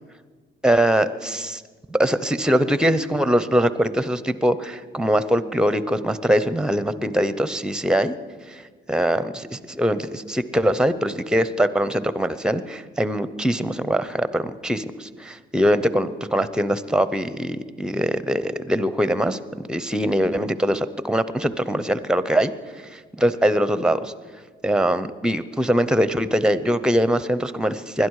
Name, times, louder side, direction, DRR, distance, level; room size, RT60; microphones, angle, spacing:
voice 1, 0.6-1.6 1.9-8.1 8.5-8.6 8.9-19.4 19.7-22.5 22.9-24.1 24.6-28.1, equal, 5° right, 14 dB, 0.8 m, -22 dB
20.5 x 12.0 x 4.9 m, 1.5 s
cardioid pair, 90°, 20 cm